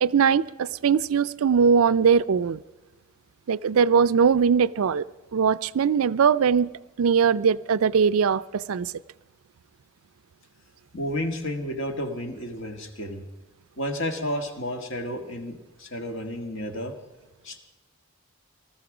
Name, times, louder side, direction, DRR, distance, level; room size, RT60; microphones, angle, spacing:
voice 1, 0.0-2.6 3.5-5.0 5.3-6.7 7.0-8.9, right 6 dB, 80° right, 18 dB, 0.4 m, -21 dB
voice 2, 10.9-13.2 13.8-16.9 17.4-17.6, left 1 dB, 60° left, 5 dB, 1.8 m, -31 dB
20.0 x 13.5 x 5.0 m, 1.1 s
head